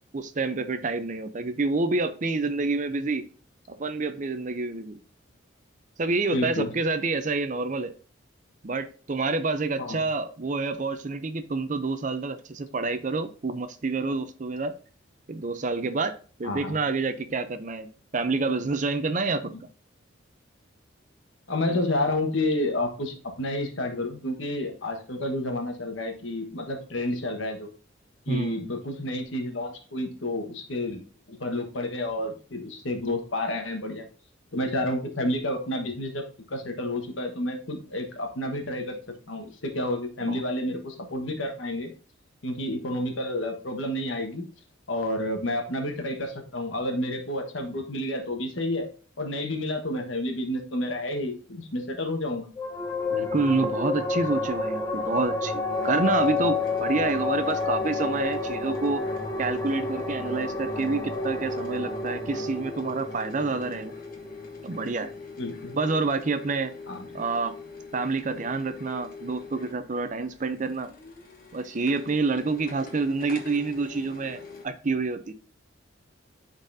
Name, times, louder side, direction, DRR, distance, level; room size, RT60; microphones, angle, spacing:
voice 1, 0.1-3.2 3.7-5.0 6.0-7.9 8.6-14.7 15.3-16.1 16.4-19.5 28.3-28.7 40.3-40.4 53.1-59.0 59.4-63.9 64.6-65.1 65.7-66.7 67.1-67.5 67.9-70.9 71.5-75.3, right 3 dB, 40° right, 10 dB, 0.5 m, -28 dB
voice 2, 6.3-6.7 9.8-10.0 16.4-16.8 21.5-27.7 28.3-31.0 31.3-34.1 34.5-39.0 39.3-41.9 42.4-44.5 44.9-48.9 49.2-52.5 65.4-65.7 66.9-67.1, left 1 dB, 80° left, 4 dB, 1.3 m, -30 dB
sound 1, 52.6-65.4, left 3 dB, 15° left, 0.9 m, -30 dB
sound 2, 55.7-74.7, left 4 dB, 45° left, 1.2 m, -43 dB
11.5 x 4.1 x 2.6 m, 0.40 s
head